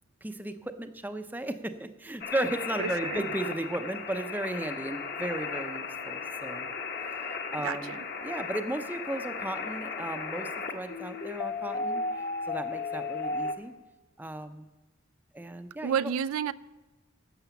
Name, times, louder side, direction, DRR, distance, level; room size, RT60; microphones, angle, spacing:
voice 1, 0.2-6.7 7.3-12.0 12.5-13.7 14.2-14.7 15.3-15.9, right 1 dB, 10° right, 0.5 m, -35 dB
sound 1, 2.2-13.5, left 4 dB, 45° left, 1.1 m, -35 dB
voice 2, 2.8-3.2 7.6-8.0 15.8-16.5, right 8 dB, 85° right, 0.3 m, -30 dB
11.5 x 7.9 x 7.0 m
head